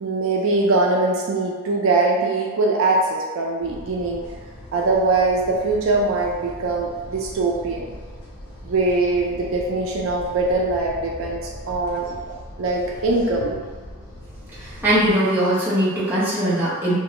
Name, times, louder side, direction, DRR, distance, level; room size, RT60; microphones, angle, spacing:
voice 1, 0.0-4.2 4.7-7.9 8.6-11.4 11.7-12.0 12.6-13.6, right 3 dB, 75° right, -2 dB, 0.4 m, -22 dB
sound 1, 3.6-15.1, equal, 55° left, 0.6 m, -40 dB
voice 2, 14.6-16.9, right 1 dB, 10° right, -10 dB, 0.6 m, -20 dB
2.4 x 2.2 x 2.9 m, 1.4 s
head